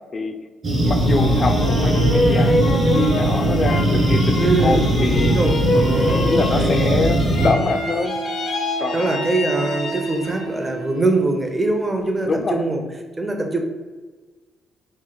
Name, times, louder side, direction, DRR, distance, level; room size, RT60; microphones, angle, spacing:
sound 1, 0.6-7.5, right 1 dB, 45° right, 0.9 m, -19 dB
sound 2, 0.8-10.6 11.1-11.7, left 2 dB, 70° left, 0.7 m, -26 dB
voice 1, 0.8-5.4 5.8-8.2 8.8-9.1 12.3-12.6, left 3 dB, 40° left, 7 dB, 0.4 m, -24 dB
voice 2, 4.4-5.0 5.3-7.1 8.9-12.8 13.2-13.6, right 2 dB, 20° right, 3 dB, 0.5 m, -23 dB
Wind instrument woodwind instrument, 7.3-11.4, right 5 dB, 85° right, 0.7 m, -32 dB
3.0 x 2.4 x 3.9 m, 1.3 s
cardioid pair, 90°, 0 cm